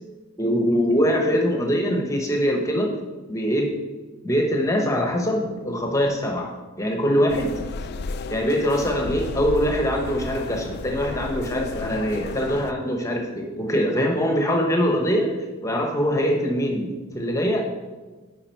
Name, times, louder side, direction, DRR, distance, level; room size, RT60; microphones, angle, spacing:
voice 1, 0.4-2.9 3.3-3.7 4.2-7.6 8.3-15.4 15.6-17.6, equal, 15° left, 2 dB, 0.9 m, -23 dB
sound 1, 7.3-12.7, left 3 dB, 45° left, 0.3 m, -33 dB
9.7 x 4.9 x 4.5 m, 1.3 s
head